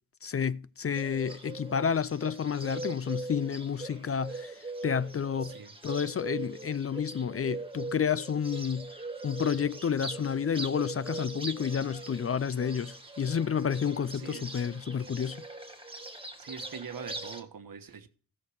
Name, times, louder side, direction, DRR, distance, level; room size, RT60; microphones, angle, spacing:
voice 1, 0.2-5.5 5.8-8.9 9.2-15.4, left 7 dB, 40° left, 0.4 m, -30 dB
Bird, 0.9-17.4, right 3 dB, 15° right, 1.7 m, -41 dB
voice 2, 14.1-14.5 16.4-18.1, right 6 dB, 70° right, 1.2 m, -43 dB
16.0 x 6.5 x 4.9 m
wide cardioid pair, 95°, 35 cm